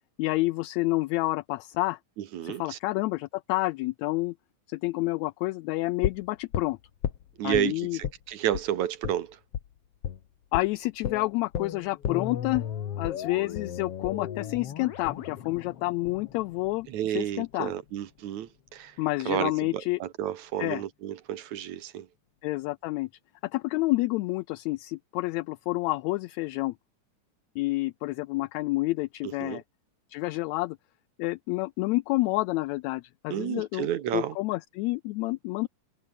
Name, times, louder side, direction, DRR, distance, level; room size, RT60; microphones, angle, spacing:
voice 1, 0.2-2.0 2.4-4.3 4.7-6.8 7.4-8.0 10.5-12.6 13.0-17.7 19.0-20.0 20.6-20.8 22.4-23.1 23.4-26.7 27.6-29.6 30.1-30.8 31.2-35.7, left 20 dB, 80° left, 1.7 m, -29 dB
voice 2, 2.3-2.8 7.4-9.4 16.9-18.9 19.3-22.1 29.4-29.6 33.3-34.4, right 11 dB, 70° right, 2.7 m, -31 dB
sound 1, 6.0-7.7 8.0-8.2 8.5-8.7 9.0-9.2 9.5-9.7 10.0-10.2 10.5-10.7 11.0-17.0 17.3-17.4, left 9 dB, 55° left, 2.3 m, -34 dB
omnidirectional pair, 3.6 m